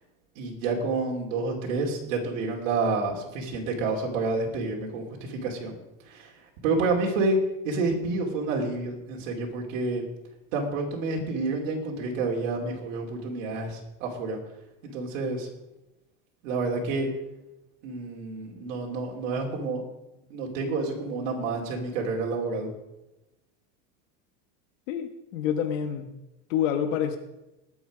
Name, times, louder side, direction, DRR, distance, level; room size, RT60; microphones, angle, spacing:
voice 1, 0.4-5.7 6.0-6.3 6.6-10.0 10.5-14.4 14.8-15.5 16.4-17.1 17.8-19.8 20.3-22.7, right 3 dB, 80° right, -1 dB, 2.9 m, -29 dB
voice 2, 24.9-26.1 26.5-27.2, left 9 dB, 90° left, 7 dB, 1.3 m, -27 dB
19.5 x 7.4 x 5.0 m, 0.95 s
cardioid pair, 165°, 38 cm